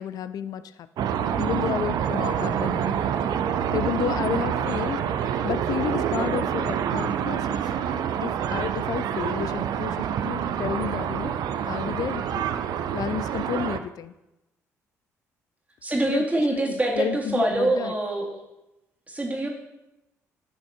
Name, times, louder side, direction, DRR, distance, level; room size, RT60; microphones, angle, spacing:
voice 1, 0.0-3.1 3.7-5.0 5.4-7.7 8.2-11.4 11.7-12.5 12.9-14.1 16.1-16.2 16.5-17.9, left 9 dB, 50° left, 14 dB, 0.5 m, -31 dB
sound 1, 1.0-13.8, right 9 dB, 55° right, 0.6 m, -27 dB
voice 2, 15.8-18.4 19.1-19.5, right 2 dB, 15° right, -1 dB, 2.4 m, -25 dB
12.0 x 6.2 x 3.5 m, 0.93 s
figure-of-eight pair, 45°, 8 cm